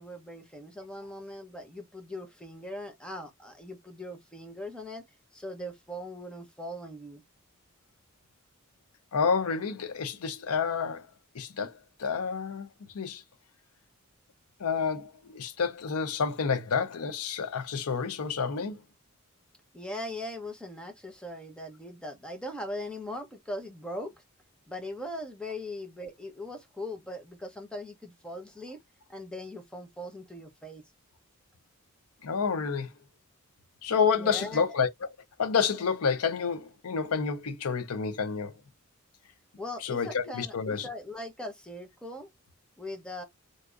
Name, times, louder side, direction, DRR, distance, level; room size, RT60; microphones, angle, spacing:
voice 1, 0.0-5.0 5.3-7.2 19.7-24.2 24.7-28.8 29.1-30.8 34.1-34.6 39.6-42.3 42.8-43.2, left 1 dB, 5° left, 0.8 m, -40 dB
voice 2, 9.1-11.1 11.3-12.7 12.9-13.2 14.6-18.8 32.2-32.9 33.8-35.1 35.4-38.5 39.8-40.9, left 6 dB, 85° left, 0.6 m, -29 dB
3.5 x 2.7 x 2.4 m
head